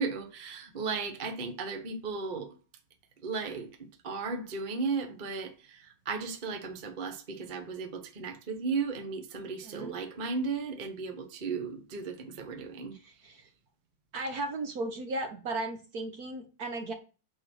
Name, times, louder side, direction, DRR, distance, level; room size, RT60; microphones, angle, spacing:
voice 1, 0.0-2.5 3.2-12.9, right 4 dB, 30° right, 1.1 m, -35 dB
voice 2, 9.6-10.0 13.0-13.5 14.1-16.9, right 2 dB, 50° right, 1.5 m, -36 dB
9.1 x 4.2 x 6.3 m
omnidirectional pair, 2.2 m